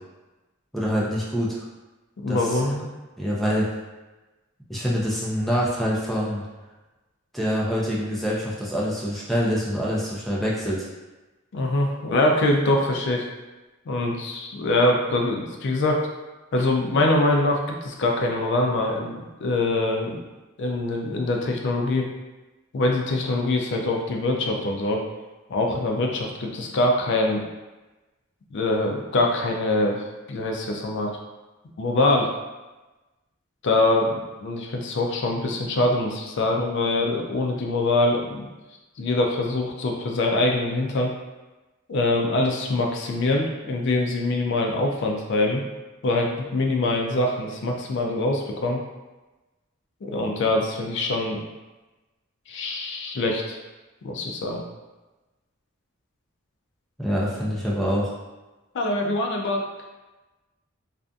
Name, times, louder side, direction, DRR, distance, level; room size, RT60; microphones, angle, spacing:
voice 1, 0.7-1.6 2.3-2.6 3.2-3.7 4.7-6.4 7.3-10.9 57.0-58.1, equal, ahead, -6 dB, 0.5 m, -25 dB
voice 2, 2.2-2.9 11.5-13.3 13.9-16.0 16.5-20.2 20.6-22.1 22.7-25.0 25.5-27.5 28.5-31.1 31.8-32.3 33.6-38.5 39.0-41.1 41.9-45.6 46.0-48.8 50.0-51.4 52.5-53.6 54.0-54.6 58.7-59.6, left 2 dB, 60° left, 1 dB, 0.4 m, -24 dB
2.5 x 2.5 x 2.3 m, 1.1 s
head